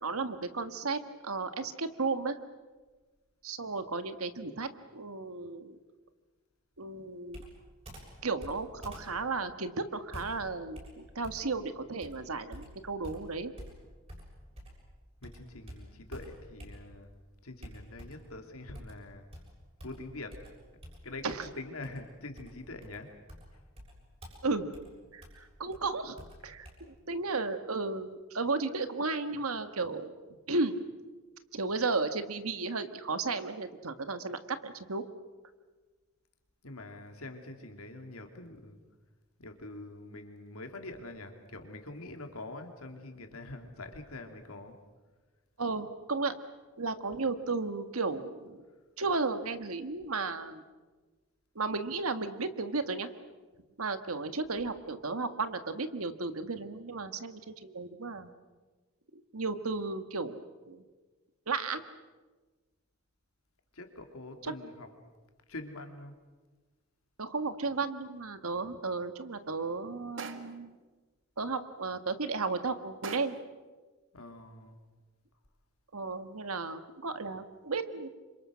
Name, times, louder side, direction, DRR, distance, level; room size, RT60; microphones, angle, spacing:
voice 1, 0.0-2.4 3.4-5.8 6.8-7.4 8.2-13.5 21.2-21.5 24.4-24.7 25.1-26.2 26.4-30.1 30.5-30.8 31.5-35.0 45.6-46.3 46.8-48.6 49.0-50.6 51.5-53.1 53.8-58.3 59.3-60.4 60.6-60.8 61.5-61.8 64.4-64.5 67.2-70.8 71.4-73.4 75.9-78.1, right 3 dB, 85° right, 10 dB, 1.7 m, -34 dB
Computer keyboard, 7.3-14.9 15.2-17.1 17.6-18.4 18.7-26.7, equal, 30° right, 7.1 m, -49 dB
voice 2, 15.2-17.1 17.4-19.3 19.8-20.5 21.0-23.2 27.0-27.1 36.6-38.8 39.4-44.7 63.7-65.0 65.5-66.2 74.1-74.8, left 2 dB, 85° left, 5 dB, 2.9 m, -44 dB
sound 1, 70.2-70.7 73.0-73.5, right 4 dB, 60° right, 1.7 m, -42 dB
28.5 x 26.0 x 6.4 m, 1.3 s
head